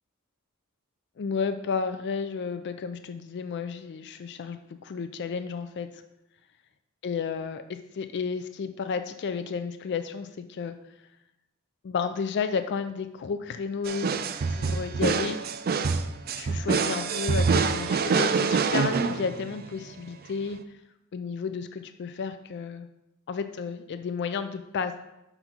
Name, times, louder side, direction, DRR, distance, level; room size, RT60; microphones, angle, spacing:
voice 1, 1.2-6.0 7.0-10.8 11.8-14.1 14.5-15.4 16.4-20.6 21.1-22.9 23.3-24.9, left 5 dB, 50° left, 9 dB, 0.4 m, -32 dB
sound 1, 13.9-19.7, right 5 dB, 45° right, 0.4 m, -26 dB
5.6 x 4.0 x 5.9 m, 0.88 s
head